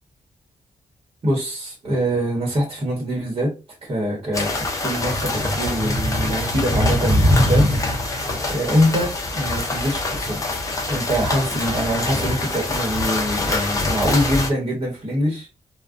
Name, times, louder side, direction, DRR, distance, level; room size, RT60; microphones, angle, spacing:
voice 1, 1.2-3.5 3.8-7.7 8.5-10.5 10.9-15.5, equal, 40° right, 1.0 m, -24 dB
sound 1, 4.3-14.5, left 1 dB, 25° left, 0.6 m, -23 dB
2.3 x 2.1 x 2.5 m
wide cardioid pair, 135°, 13 cm